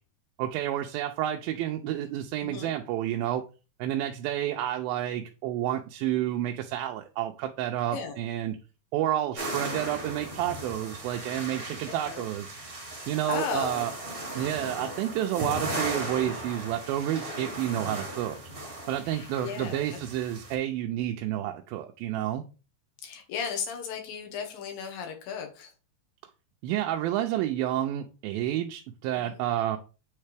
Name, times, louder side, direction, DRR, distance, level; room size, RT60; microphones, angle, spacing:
voice 1, 0.4-3.4 3.8-8.6 8.9-12.5 13.1-13.9 14.4-18.4 18.9-22.5 26.6-29.8, right 12 dB, 85° right, 2.4 m, -30 dB
voice 2, 2.4-2.7 7.9-8.2 12.1-12.3 13.3-13.9 19.0-20.0 23.0-25.7 29.2-29.4, left 7 dB, 80° left, 2.8 m, -35 dB
sound 1, 9.3-20.5, right 1 dB, 30° right, 1.0 m, -37 dB
8.8 x 3.2 x 3.3 m
omnidirectional pair, 4.1 m